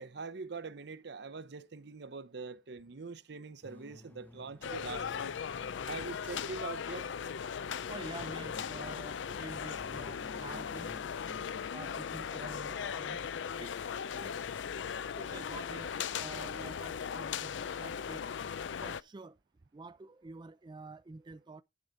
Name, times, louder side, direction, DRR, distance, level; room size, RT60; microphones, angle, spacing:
voice 1, 0.0-5.3 5.9-7.1, right 4 dB, 65° right, 0.7 m, -43 dB
sound 1, 3.6-7.0 7.9-12.7, left 1 dB, 10° left, 0.8 m, -55 dB
sound 2, 4.6-19.0, left 7 dB, 75° left, 0.4 m, -38 dB
voice 2, 7.9-11.0 11.7-13.3 13.6-13.7 14.2-14.4 14.6-14.9 15.2-18.3 18.8-19.4 19.7-21.6, right 3 dB, 25° right, 0.4 m, -48 dB
10.5 x 4.9 x 3.8 m
head